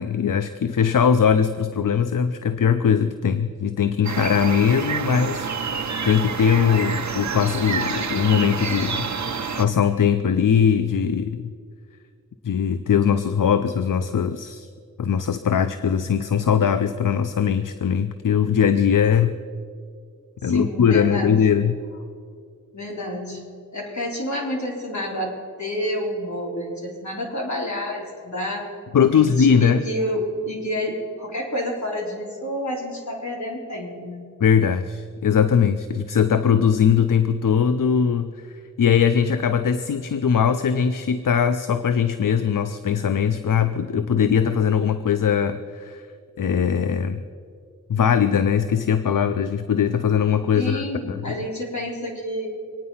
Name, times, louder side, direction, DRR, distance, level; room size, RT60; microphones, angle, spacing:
voice 1, 0.0-11.5 12.4-14.7 15.0-19.4 20.4-21.8 28.9-29.8 34.4-38.5 38.8-46.1 46.4-47.2 47.9-50.8 51.3-51.4, left 7 dB, 80° left, 11 dB, 0.6 m, -20 dB
sound 1, 4.0-9.6, right 5 dB, 60° right, 0.9 m, -28 dB
voice 2, 20.4-21.4 22.7-23.4 23.7-28.7 29.1-34.3 50.5-52.5, left 1 dB, 60° left, -3 dB, 3.9 m, -29 dB
24.5 x 9.6 x 5.6 m, 2.3 s
wide cardioid pair, 85°, 32 cm